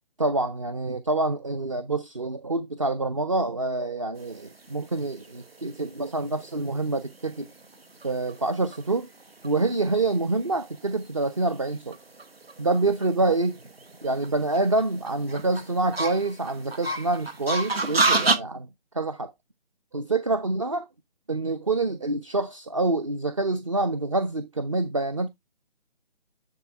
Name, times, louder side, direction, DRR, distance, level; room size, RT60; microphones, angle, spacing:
voice 1, 0.2-7.5 8.0-9.1 9.4-12.0 12.6-13.6 14.0-18.7 18.9-19.3 19.9-20.9 21.3-25.3, right 2 dB, 30° right, 0.5 m, -26 dB
sound 1, 4.5-18.4, right 3 dB, 70° right, 1.8 m, -31 dB
10.5 x 4.5 x 3.3 m
figure-of-eight pair, 150°, 31 cm